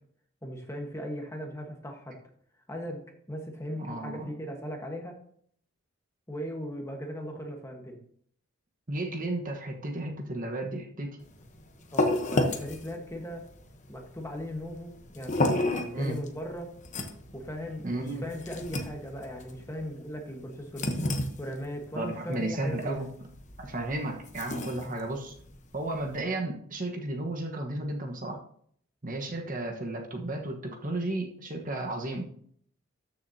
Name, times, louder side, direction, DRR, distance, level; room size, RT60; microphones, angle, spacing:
voice 1, 0.4-2.2 2.7-5.2 6.3-8.0 11.9-13.5 13.9-16.7 17.3-20.9 21.4-23.1, equal, 15° left, 2 dB, 1.3 m, -38 dB
voice 2, 3.8-4.3 8.9-11.2 15.9-16.2 17.8-18.2 21.9-23.1 23.6-25.3 25.7-28.4 29.0-32.3, right 2 dB, 40° right, 2 dB, 1.3 m, -33 dB
sound 1, 11.2-26.2, left 2 dB, 35° left, 1.0 m, -33 dB
13.5 x 6.5 x 2.8 m, 0.62 s
head